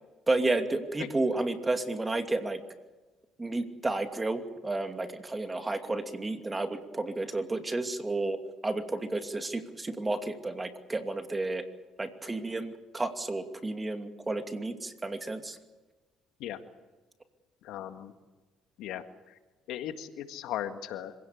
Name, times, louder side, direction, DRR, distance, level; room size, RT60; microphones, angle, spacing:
voice 1, 0.3-2.6 3.4-11.6 12.0-15.6, right 2 dB, 20° right, 7 dB, 2.5 m, -31 dB
voice 2, 17.6-18.1 18.8-19.4 19.7-21.1, left 11 dB, 80° left, 8 dB, 1.8 m, -37 dB
25.5 x 17.0 x 8.6 m, 1.2 s
cardioid pair, 90°, 0 cm